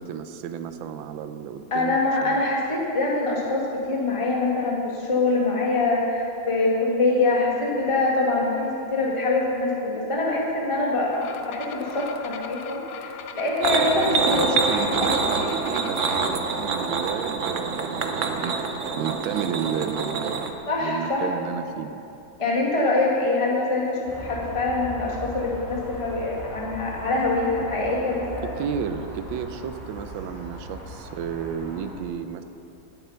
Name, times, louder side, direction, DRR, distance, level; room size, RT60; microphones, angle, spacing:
voice 1, 0.0-2.4 14.2-18.5 19.0-22.0 28.4-32.4, right 8 dB, 75° right, 10 dB, 1.4 m, -32 dB
voice 2, 1.7-15.4 20.7-21.3 22.4-28.5, left 2 dB, 15° left, -3 dB, 1.8 m, -24 dB
sound 1, 11.1-16.3, left 7 dB, 85° left, 1.6 m, -39 dB
sound 2, 13.6-20.5, right 4 dB, 55° right, 0.8 m, -26 dB
sound 3, 24.1-31.9, equal, 5° right, 3.4 m, -39 dB
17.0 x 8.3 x 5.7 m, 2.8 s
omnidirectional pair, 2.2 m